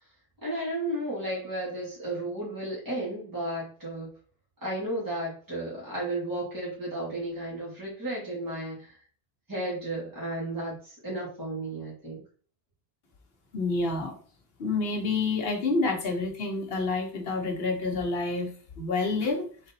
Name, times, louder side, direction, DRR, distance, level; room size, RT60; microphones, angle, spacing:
voice 1, 0.4-4.1 4.6-9.0 9.5-12.2, right 1 dB, 15° right, -7 dB, 2.1 m, -33 dB
voice 2, 13.5-14.2 14.6-18.5 18.8-19.5, left 3 dB, 60° left, 3 dB, 1.2 m, -28 dB
3.9 x 3.8 x 2.8 m, 0.41 s
omnidirectional pair, 1.1 m